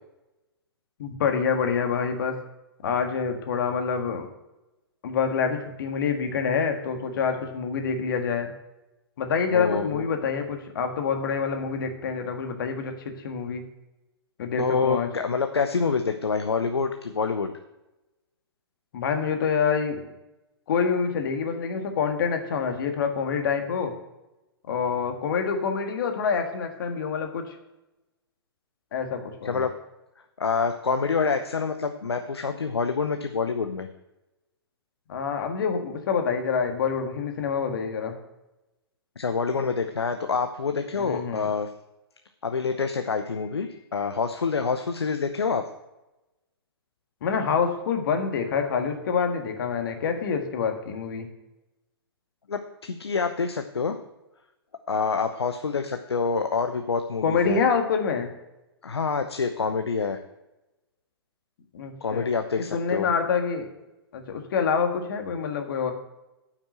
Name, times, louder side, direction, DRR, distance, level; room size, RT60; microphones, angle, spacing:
voice 1, 1.0-2.3 2.8-4.3 5.0-8.5 9.2-12.9 13.2-13.6 14.4-15.1 18.9-20.0 20.7-23.9 24.7-27.6 28.9-29.7 35.1-38.2 41.0-41.5 47.2-51.3 57.2-58.3 61.7-62.3 62.7-63.7 64.1-65.9, left 6 dB, 55° left, 5 dB, 1.6 m, -26 dB
voice 2, 9.5-10.0 14.6-17.5 29.4-29.7 30.4-33.9 39.2-41.7 42.4-45.7 52.5-54.0 54.9-57.6 58.8-60.2 62.0-63.1, left 5 dB, 80° left, 7 dB, 0.7 m, -27 dB
8.9 x 5.9 x 7.7 m, 0.97 s
figure-of-eight pair, 110°, 13 cm